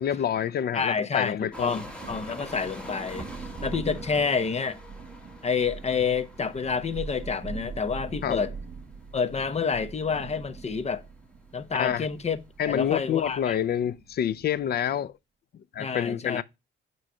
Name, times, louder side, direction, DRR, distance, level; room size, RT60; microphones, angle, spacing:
voice 1, 0.0-1.8 8.2-8.4 11.8-12.1 12.6-15.1 15.7-16.4, left 9 dB, 55° left, 0.5 m, -27 dB
voice 2, 0.7-4.8 5.4-8.5 9.1-11.0 11.5-13.6 15.8-16.4, left 5 dB, 35° left, 0.9 m, -28 dB
sound 1, 1.5-13.5, left 1 dB, 5° left, 1.7 m, -47 dB
Thunder, 1.5-14.7, right 5 dB, 40° right, 1.7 m, -43 dB
8.8 x 3.1 x 5.4 m
cardioid pair, 90°, 20 cm